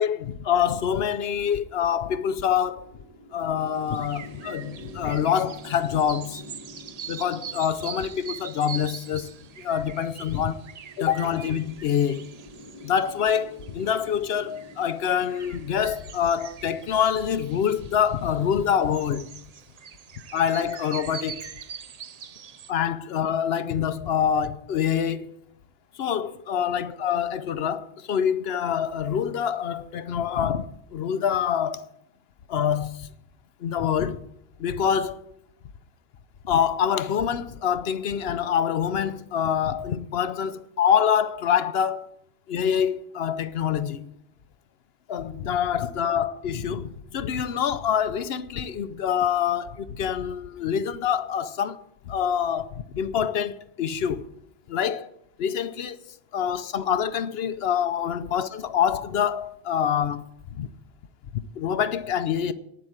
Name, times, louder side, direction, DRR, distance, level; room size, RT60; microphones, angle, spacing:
voice 1, 0.0-2.9 3.3-6.4 7.1-10.6 11.0-12.3 12.8-19.3 20.3-21.5 22.7-25.3 26.0-31.9 32.5-33.1 33.6-34.2 34.6-35.2 36.4-42.1 42.5-44.0 45.1-54.2 54.7-55.1 55.4-60.2 60.6-60.7 61.6-62.5, left 8 dB, 65° left, 0.8 m, -26 dB
sound 1, 2.2-19.4, equal, 25° right, 1.2 m, -48 dB
sound 2, 3.6-22.7, right 8 dB, 50° right, 0.5 m, -43 dB
9.5 x 7.8 x 8.7 m
omnidirectional pair, 1.1 m